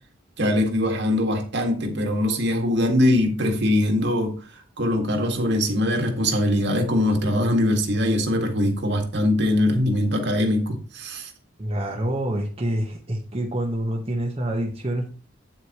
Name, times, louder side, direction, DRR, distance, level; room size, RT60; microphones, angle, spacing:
voice 1, 0.4-4.4 4.8-11.3, left 1 dB, 60° right, 1.9 m, -22 dB
voice 2, 11.6-15.1, right 1 dB, 30° right, 1.3 m, -27 dB
9.0 x 8.2 x 3.0 m
head